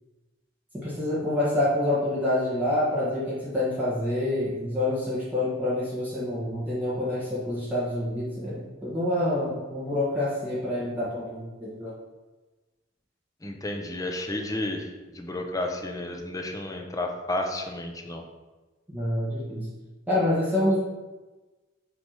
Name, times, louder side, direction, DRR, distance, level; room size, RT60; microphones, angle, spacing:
voice 1, 0.8-11.9 18.9-19.7 20.1-20.8, left 1 dB, 10° right, -10 dB, 1.5 m, -27 dB
voice 2, 13.4-14.9 15.1-18.2, left 1 dB, 20° left, 3 dB, 0.7 m, -31 dB
6.1 x 3.4 x 5.6 m, 1.2 s
head